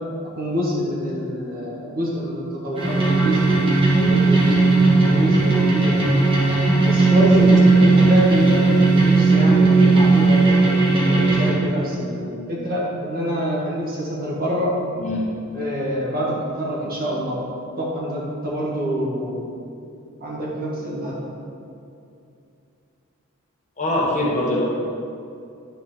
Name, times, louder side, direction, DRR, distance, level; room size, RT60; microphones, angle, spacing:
voice 1, 0.4-3.7 3.9-4.7 5.0-6.0 6.8-14.7 15.5-17.4 17.8-19.4 20.2-21.1, equal, 45° right, -5 dB, 1.7 m, -26 dB
sound 1, 2.8-11.5, right 3 dB, 25° right, 1.7 m, -16 dB
voice 2, 7.2-7.5 15.0-15.3 23.8-24.6, left 1 dB, 35° left, -4 dB, 1.3 m, -23 dB
10.5 x 4.4 x 4.3 m, 2.6 s
head